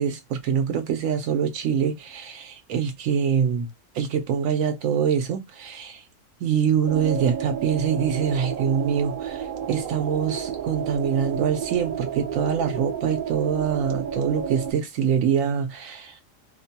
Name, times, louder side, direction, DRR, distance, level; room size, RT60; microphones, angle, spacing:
voice 1, 0.0-3.7 3.9-6.0 6.4-16.2, right 7 dB, 85° right, 1.0 m, -24 dB
sound 1, 6.9-14.7, right 8 dB, 55° right, 0.6 m, -31 dB
2.6 x 2.1 x 2.6 m
omnidirectional pair, 1.3 m